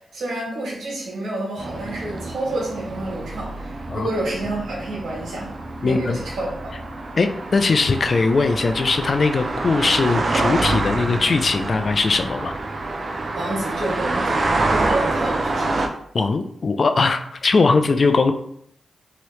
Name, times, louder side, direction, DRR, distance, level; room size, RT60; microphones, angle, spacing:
voice 1, 0.1-5.5 5.8-6.7 13.3-15.7, right 1 dB, 80° right, -3 dB, 1.3 m, -29 dB
sound 1, 1.6-15.9, right 2 dB, 60° right, 0.4 m, -26 dB
voice 2, 5.8-6.2 7.2-12.5 16.1-18.3, left 4 dB, 55° left, 8 dB, 0.3 m, -20 dB
2.8 x 2.8 x 3.1 m, 0.69 s
cardioid pair, 50°, 0 cm